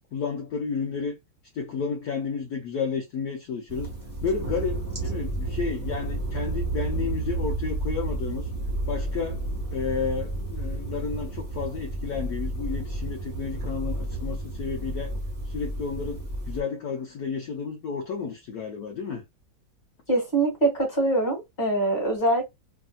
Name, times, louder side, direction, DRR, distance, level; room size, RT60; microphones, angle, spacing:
voice 1, 0.1-1.1 1.5-3.9 4.2-8.5 8.9-15.2 15.4-19.2, left 5 dB, 65° left, 1.0 m, -32 dB
sound 1, 3.7-16.6, right 2 dB, 15° right, 0.9 m, -31 dB
voice 2, 20.1-22.4, right 2 dB, 25° left, 1.6 m, -23 dB
3.3 x 2.7 x 2.3 m
omnidirectional pair, 2.2 m